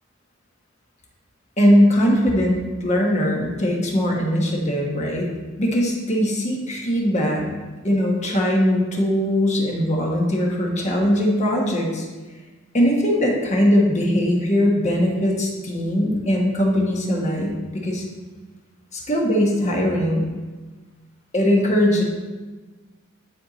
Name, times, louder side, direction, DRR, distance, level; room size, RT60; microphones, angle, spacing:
voice 1, 1.6-5.3 5.6-7.4 7.8-12.1 12.7-18.0 18.9-20.3 21.3-22.0, equal, 35° left, -1 dB, 1.2 m, -20 dB
9.7 x 3.6 x 4.0 m, 1.3 s
head